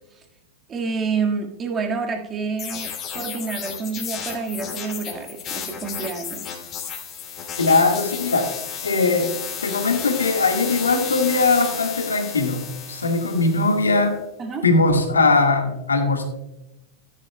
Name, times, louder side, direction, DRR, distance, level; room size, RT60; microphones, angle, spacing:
voice 1, 0.7-6.6 14.4-14.6, right 5 dB, 25° right, 2 dB, 1.7 m, -28 dB
sound 1, 2.6-14.0, left 8 dB, 35° left, 2.6 m, -33 dB
voice 2, 7.6-8.5 8.8-9.3 9.6-14.2 14.6-16.2, left 3 dB, 85° left, 4 dB, 1.6 m, -20 dB
13.5 x 10.5 x 2.2 m, 0.91 s
figure-of-eight pair, 95°, 0 cm